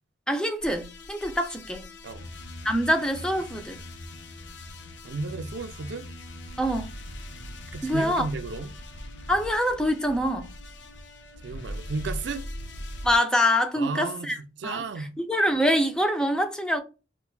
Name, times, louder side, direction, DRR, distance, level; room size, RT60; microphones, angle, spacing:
voice 1, 0.3-1.9 2.6-3.8 6.6-6.9 7.8-8.3 9.3-10.5 13.0-14.4 14.6-16.8, equal, 5° left, 0.4 m, -25 dB
sound 1, 0.6-13.2, left 1 dB, 70° left, 0.6 m, -40 dB
voice 2, 5.0-6.1 7.7-8.7 11.4-12.5 13.8-15.2, right 3 dB, 75° right, 0.5 m, -34 dB
4.4 x 2.2 x 2.2 m
head